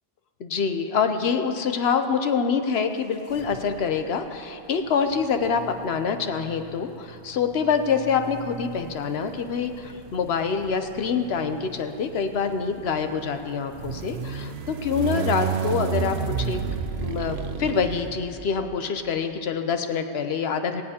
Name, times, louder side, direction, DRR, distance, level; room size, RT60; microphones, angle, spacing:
voice 1, 0.4-16.6 17.0-20.8, left 6 dB, 80° left, 7 dB, 1.0 m, -26 dB
sound 1, 3.3-4.0 5.1-18.8, right 7 dB, 90° right, 0.9 m, -33 dB
18.0 x 16.5 x 2.9 m, 2.6 s
omnidirectional pair, 1.0 m